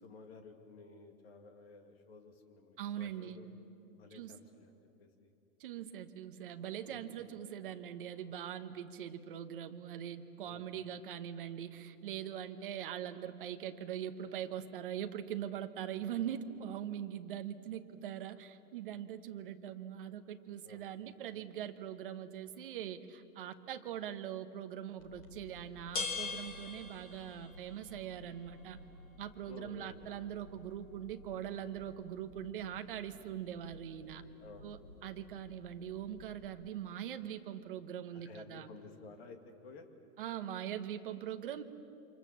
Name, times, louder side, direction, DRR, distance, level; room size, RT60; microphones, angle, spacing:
voice 1, 0.0-3.5 3.9-4.7 5.0-5.3 6.8-7.1 10.4-10.7 20.6-20.8 29.5-30.0 34.4-34.7 38.1-39.9, left 4 dB, 40° left, 5 dB, 2.4 m, -53 dB
voice 2, 2.8-3.4 4.1-4.4 5.6-28.8 29.2-34.2 34.6-38.7 40.2-41.6, right 10 dB, 35° right, 8 dB, 1.0 m, -42 dB
sound 1, 25.0-36.5, left 4 dB, 20° left, 2.4 m, -47 dB
28.5 x 26.5 x 7.4 m, 2.6 s
hypercardioid pair, 175°, 47 cm